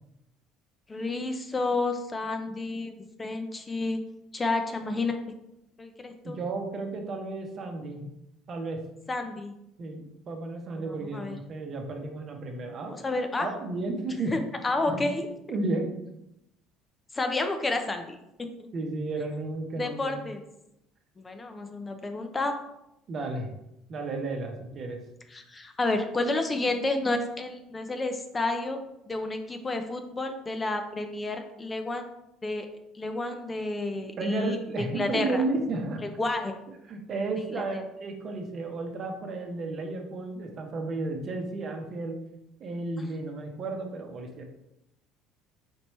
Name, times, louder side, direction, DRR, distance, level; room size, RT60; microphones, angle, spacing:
voice 1, 0.9-2.9 3.2-4.0 4.3-5.2 5.8-6.4 9.1-9.5 10.8-11.4 12.9-13.5 14.3-15.3 17.1-18.2 18.6-18.7 19.8-20.4 21.2-22.5 25.3-28.8 29.1-32.0 32.4-32.7 32.9-35.4 36.0-36.6 37.5-37.8, left 2 dB, 20° left, 6 dB, 0.5 m, -30 dB
voice 2, 6.2-8.1 8.5-8.8 9.8-13.0 13.4-14.3 14.9-15.1 15.5-15.9 18.7-20.2 23.1-23.5 23.9-25.0 34.2-36.0 36.9-42.2 42.6-44.5, right 3 dB, 45° right, 3 dB, 0.8 m, -33 dB
4.4 x 3.1 x 3.1 m, 0.85 s
supercardioid pair, 90°, 0 cm